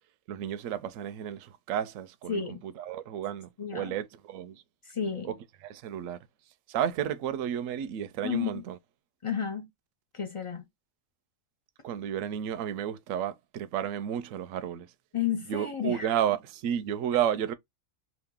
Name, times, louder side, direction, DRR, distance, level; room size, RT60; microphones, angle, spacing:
voice 1, 0.3-4.6 5.2-5.3 5.6-6.2 6.7-8.8 11.8-14.9 15.5-17.5, right 10 dB, 70° right, 0.9 m, -32 dB
voice 2, 2.3-2.6 3.6-4.0 4.8-5.3 8.2-8.6 9.2-9.7 10.1-10.6 15.1-16.1, left 8 dB, 55° left, 0.3 m, -32 dB
2.9 x 2.5 x 3.6 m
omnidirectional pair, 1.5 m